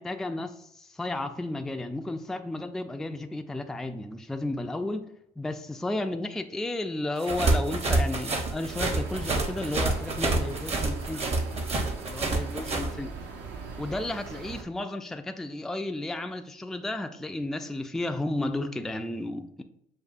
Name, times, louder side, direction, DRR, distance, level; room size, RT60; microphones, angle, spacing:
voice 1, 0.0-5.1 5.4-11.4 12.1-13.1 13.8-19.6, left 2 dB, ahead, 0.3 m, -33 dB
sound 1, 7.2-12.9, right 2 dB, 35° right, 0.7 m, -27 dB
sound 2, 8.7-14.6, right 4 dB, 70° right, 0.7 m, -40 dB
6.5 x 2.4 x 2.5 m
supercardioid pair, 65°, 18 cm